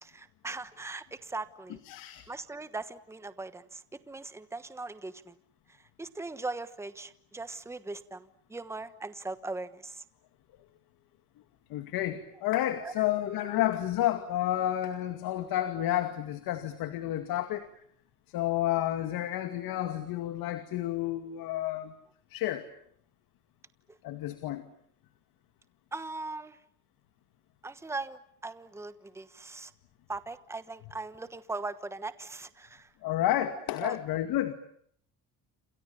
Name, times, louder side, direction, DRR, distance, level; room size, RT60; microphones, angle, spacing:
voice 1, 0.0-1.8 2.3-3.8 4.1-5.3 6.0-10.0 12.8-12.9 23.9-24.0 25.9-26.6 27.6-29.7 30.1-32.9 33.8-34.0, right 3 dB, 5° right, 13 dB, 1.2 m, -39 dB
voice 2, 1.8-2.3 11.7-17.7 18.3-21.9 22.3-22.7 24.0-24.6 33.0-34.5, left 13 dB, 70° left, 9 dB, 2.3 m, -30 dB
28.5 x 27.5 x 7.1 m, 0.66 s
cardioid pair, 130°, 36 cm